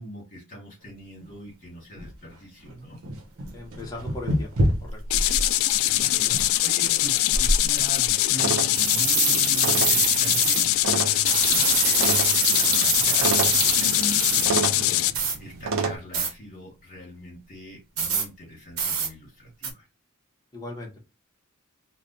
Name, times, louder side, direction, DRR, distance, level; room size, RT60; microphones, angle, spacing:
voice 1, 0.0-3.0 5.8-6.3 6.6-19.9, right 1 dB, 40° left, -3 dB, 1.4 m, -42 dB
sound 1, 1.2-1.3 2.0-2.1 2.7-2.8 3.0-5.5 5.8-6.0 6.3-6.9 7.3-8.1 8.7-10.7 11.3-14.5 15.1-15.4 16.1-16.3 18.0-18.3 18.8-19.1 19.6-19.7, right 4 dB, 85° right, 0.9 m, -25 dB
voice 2, 3.5-4.5 4.8-5.0 20.5-21.0, left 2 dB, 20° left, -2 dB, 1.0 m, -38 dB
sound 2, 5.1-15.1, left 15 dB, 75° left, 0.3 m, -23 dB
sound 3, 8.4-16.0, right 4 dB, 70° right, 0.6 m, -31 dB
3.3 x 2.3 x 4.0 m, 0.26 s
head